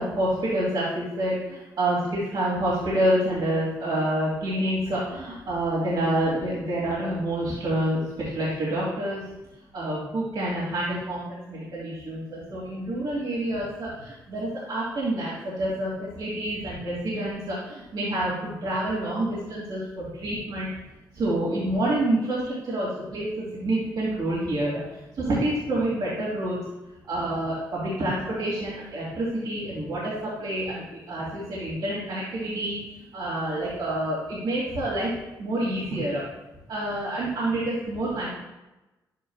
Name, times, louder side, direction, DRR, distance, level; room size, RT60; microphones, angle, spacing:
voice 1, 0.0-9.3 9.7-20.7 21.1-26.6 27.0-32.8 33.1-36.2 36.7-38.3, right 1 dB, 65° right, -7 dB, 2.7 m, -28 dB
10.5 x 9.3 x 2.4 m, 1.0 s
supercardioid pair, 60°, 8 cm